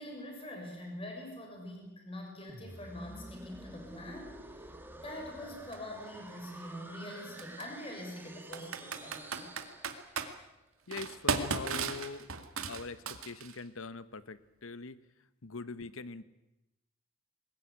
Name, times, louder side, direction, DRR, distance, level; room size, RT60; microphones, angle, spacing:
voice 1, 0.0-4.8 5.0-9.5 15.4-15.5, left 1 dB, 25° left, 2 dB, 6.4 m, -44 dB
sound 1, 2.5-10.4, right 1 dB, 10° right, 1.6 m, -49 dB
Computer keyboard, 5.7-5.8 7.4-7.6 8.5-10.3 10.9-13.6, right 5 dB, 90° right, 2.1 m, -35 dB
voice 2, 10.9-12.3 12.7-15.0 15.4-16.2, left 4 dB, 80° left, 15 dB, 1.0 m, -43 dB
22.0 x 19.5 x 9.5 m, 0.94 s
head